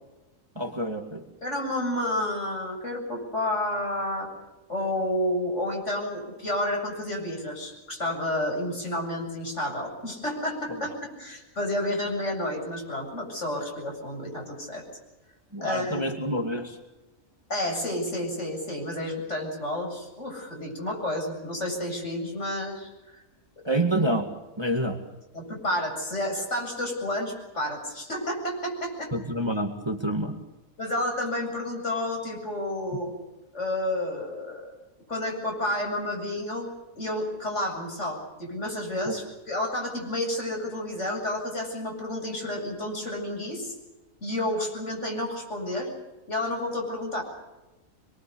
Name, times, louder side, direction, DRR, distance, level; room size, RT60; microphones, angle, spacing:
voice 1, 0.6-1.2 15.5-16.8 23.7-24.3 24.6-25.0 29.1-30.4 39.1-39.2, right 1 dB, 20° right, 4 dB, 2.0 m, -27 dB
voice 2, 1.4-4.3 4.7-14.8 15.6-16.1 17.5-23.2 23.6-23.7 25.3-29.1 30.8-33.1 33.5-34.7 35.1-43.7 44.2-45.9 46.3-47.2, left 1 dB, 60° left, 1 dB, 8.4 m, -30 dB
26.5 x 23.0 x 7.0 m, 1.0 s
omnidirectional pair, 1.4 m